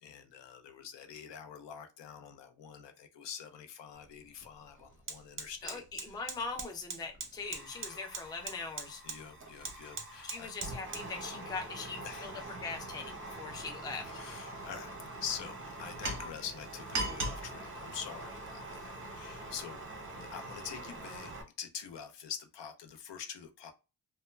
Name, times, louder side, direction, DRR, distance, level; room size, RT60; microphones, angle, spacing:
voice 1, 0.0-5.8 6.1-6.2 7.8-8.0 9.0-10.5 12.0-12.6 14.1-19.8 20.1-21.3 21.6-23.7, left 7 dB, 80° left, 0.6 m, -45 dB
Fire, 3.9-4.1 4.4-21.4, right 2 dB, 30° right, 0.6 m, -42 dB
voice 2, 5.6-9.0 10.2-14.1, left 4 dB, 10° left, 0.3 m, -41 dB
2.1 x 2.1 x 3.1 m
wide cardioid pair, 145°, 42 cm